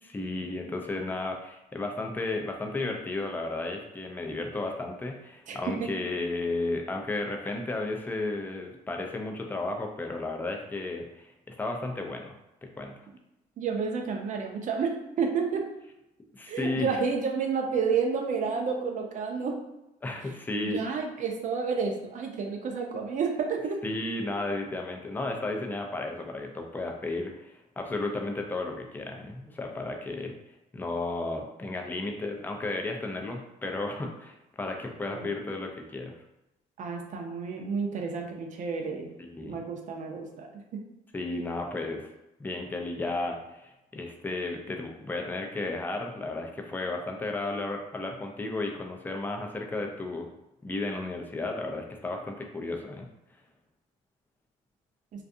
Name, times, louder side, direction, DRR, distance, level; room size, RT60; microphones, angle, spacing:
voice 1, 0.0-12.3 12.8-12.9 16.3-17.0 20.0-21.0 23.8-30.4 30.7-36.1 39.2-39.6 41.1-42.1 42.4-50.3 50.6-53.1, left 2 dB, 10° left, 2 dB, 0.4 m, -33 dB
voice 2, 5.5-5.9 13.6-15.6 16.5-19.5 20.7-23.8 35.1-35.3 36.8-39.1 39.4-40.8, right 5 dB, 50° right, 2 dB, 0.5 m, -30 dB
2.5 x 2.3 x 2.5 m, 0.91 s
cardioid pair, 110°, 17 cm